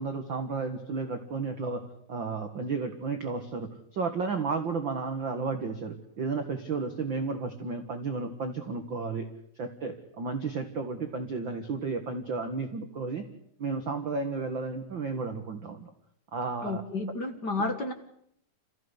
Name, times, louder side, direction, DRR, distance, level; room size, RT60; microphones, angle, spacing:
voice 1, 0.0-9.3 9.6-13.2 13.6-15.9 16.3-16.8, right 4 dB, 55° right, 6 dB, 1.4 m, -33 dB
voice 2, 16.6-17.9, left 2 dB, 65° left, 5 dB, 1.0 m, -31 dB
28.0 x 15.5 x 9.8 m, 0.73 s
omnidirectional pair, 4.5 m